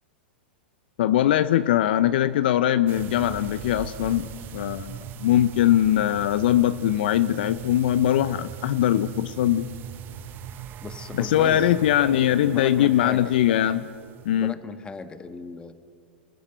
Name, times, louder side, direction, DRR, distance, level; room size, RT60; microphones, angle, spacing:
voice 1, 1.0-9.7 11.1-13.9 14.2-14.5, left 12 dB, 60° left, 13 dB, 0.7 m, -21 dB
sound 1, 2.9-14.5, right 9 dB, 35° right, 1.0 m, -39 dB
voice 2, 10.8-11.6 12.4-13.3 14.3-15.7, left 4 dB, 15° left, 10 dB, 1.5 m, -36 dB
30.0 x 15.5 x 8.0 m, 2.3 s
hypercardioid pair, 100°, 6 cm